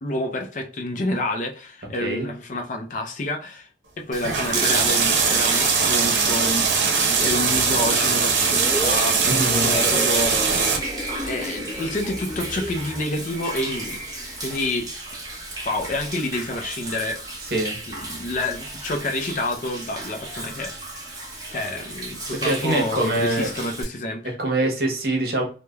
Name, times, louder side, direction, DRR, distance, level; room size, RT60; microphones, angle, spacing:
voice 1, 0.0-3.7 4.0-6.7 7.0-14.0 14.4-14.9 15.7-17.2 17.9-21.1 21.5-24.4, left 1 dB, 45° left, 0.4 m, -29 dB
Human voice / Rain / Stream, 4.1-23.8, right 2 dB, 20° right, 0.8 m, -36 dB
sound 1, 4.2-10.8, right 5 dB, 90° right, 0.6 m, -21 dB
sound 2, 8.5-14.6 15.0-15.2, equal, 10° left, 0.7 m, -34 dB
voice 2, 9.2-9.7 17.5-17.8 22.4-23.5 24.4-25.4, right 1 dB, 55° right, 0.8 m, -24 dB
3.1 x 2.1 x 2.2 m
head